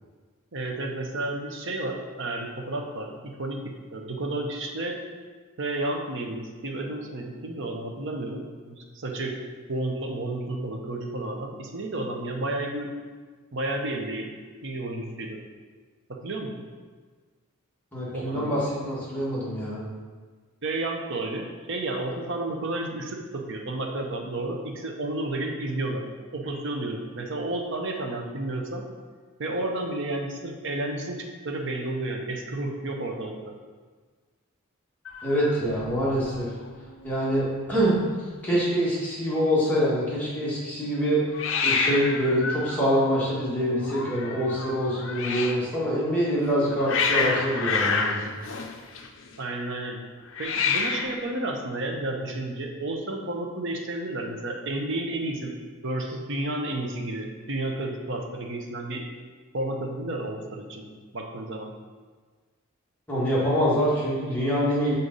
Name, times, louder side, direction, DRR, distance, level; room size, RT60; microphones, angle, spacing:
voice 1, 0.5-5.0 5.6-9.4 9.7-12.9 13.5-14.3 14.6-15.4 16.1-16.5 18.1-18.5 20.6-26.0 26.3-28.8 29.4-33.5 49.4-50.0 50.4-55.5 55.8-59.0 59.5-60.8 61.1-61.7, right 2 dB, 60° right, 2 dB, 0.8 m, -31 dB
voice 2, 17.9-19.8 35.2-36.5 37.0-38.0 38.4-41.2 41.6-48.2 63.1-65.0, equal, 10° left, -9 dB, 1.8 m, -25 dB
Hiss, 35.1-36.4 36.7-37.1 37.4-37.5 37.7-38.4 41.3-45.7 46.4-49.4 50.3-51.2, left 5 dB, 60° left, 0.5 m, -29 dB
6.6 x 4.2 x 4.0 m, 1.4 s
head